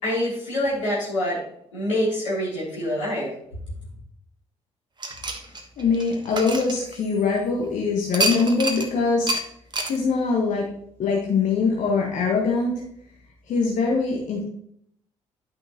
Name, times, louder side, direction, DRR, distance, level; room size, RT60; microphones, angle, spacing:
voice 1, 0.0-1.4 1.7-3.3, left 1 dB, 85° left, -8 dB, 3.3 m, -25 dB
sound 1, 5.0-7.4 8.1-8.9 9.3-9.4 9.7-10.0, right 2 dB, 30° right, 1.3 m, -27 dB
voice 2, 5.8-9.3 9.9-10.7 11.0-12.8 13.5-14.4, left 4 dB, 55° left, -2 dB, 1.4 m, -23 dB
10.5 x 6.1 x 3.0 m, 0.69 s
figure-of-eight pair, 45°, 16 cm